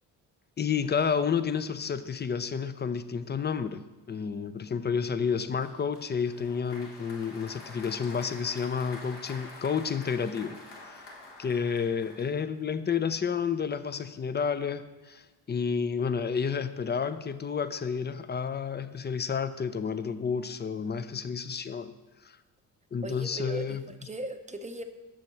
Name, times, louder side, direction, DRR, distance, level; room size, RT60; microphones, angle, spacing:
voice 1, 0.6-10.6 10.8-11.1 11.4-21.9 22.2-22.4 22.9-23.8, left 6 dB, 25° left, 13 dB, 0.5 m, -30 dB
Applause, 5.6-12.7, left 2 dB, 60° left, 1.7 m, -47 dB
voice 2, 23.0-24.8, right 1 dB, 15° right, 7 dB, 0.7 m, -38 dB
7.0 x 6.1 x 4.5 m, 1.1 s
supercardioid pair, 55°, 45 cm